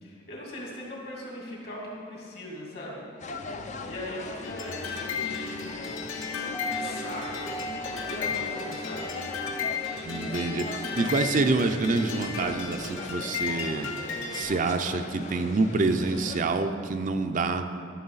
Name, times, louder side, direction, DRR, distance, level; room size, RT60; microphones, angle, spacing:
voice 1, 0.0-3.5 3.8-5.8 6.7-9.1, left 1 dB, 55° left, -4 dB, 2.6 m, -40 dB
sound 1, 3.2-16.4, left 3 dB, 40° left, 0.5 m, -40 dB
sound 2, 4.4-14.4, left 5 dB, 90° left, 1.2 m, -34 dB
Wind instrument woodwind instrument, 6.5-12.1, right 2 dB, 20° left, 0.8 m, -42 dB
voice 2, 10.0-13.9 14.3-17.7, right 3 dB, 45° right, 7 dB, 0.4 m, -27 dB
13.0 x 6.4 x 4.0 m, 2.2 s
head